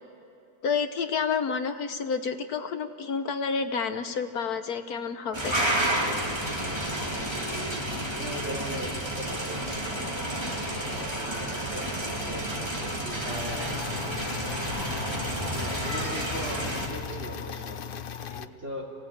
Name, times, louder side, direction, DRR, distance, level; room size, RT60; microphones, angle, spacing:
voice 1, 0.6-5.5, left 5 dB, 65° left, 8 dB, 1.4 m, -29 dB
sound 1, 5.3-16.9, right 1 dB, 15° right, 2.8 m, -30 dB
voice 2, 7.1-7.8 8.1-10.0 10.4-11.9 12.2-14.7 15.6-17.8 18.3-18.9, right 1 dB, 40° right, -1 dB, 3.4 m, -40 dB
sound 2, 13.3-18.5, left 9 dB, 80° left, 0.4 m, -37 dB
27.0 x 17.0 x 8.6 m, 3.0 s
omnidirectional pair, 1.8 m